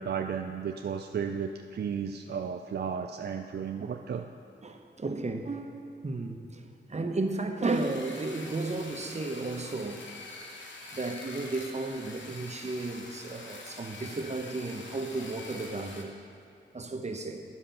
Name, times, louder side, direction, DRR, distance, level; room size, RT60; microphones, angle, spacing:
voice 1, 0.0-4.3, right 7 dB, 60° right, 5 dB, 0.4 m, -34 dB
voice 2, 4.6-10.0 10.9-16.1 16.7-17.4, right 2 dB, 35° right, 5 dB, 0.8 m, -34 dB
sound 1, 7.6-16.0, left 3 dB, 80° left, 0.9 m, -45 dB
9.9 x 5.1 x 5.7 m, 2.6 s
cardioid pair, 60°, 19 cm